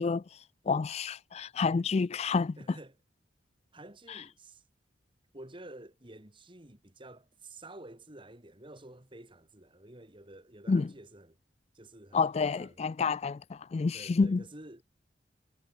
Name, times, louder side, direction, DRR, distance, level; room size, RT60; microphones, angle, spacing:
voice 1, 0.0-2.6 4.1-4.2 10.7-10.9 12.1-14.4, left 4 dB, 35° left, 0.3 m, -29 dB
voice 2, 2.6-3.0 3.7-4.6 5.3-11.4 11.7-12.8 13.9-14.8, right 1 dB, 25° right, 2.8 m, -50 dB
head